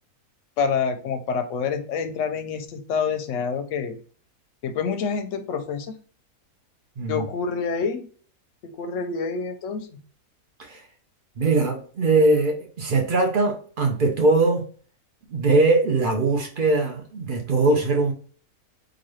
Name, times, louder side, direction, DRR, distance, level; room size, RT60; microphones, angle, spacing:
voice 1, 0.6-4.0 4.6-5.9 7.1-8.1 8.6-9.9, left 5 dB, 65° left, 7 dB, 0.8 m, -27 dB
voice 2, 7.0-7.3 10.6-10.8 11.4-14.7 15.3-18.1, right 3 dB, 50° right, 2 dB, 0.7 m, -21 dB
3.9 x 2.5 x 3.1 m, 0.44 s
omnidirectional pair, 1.6 m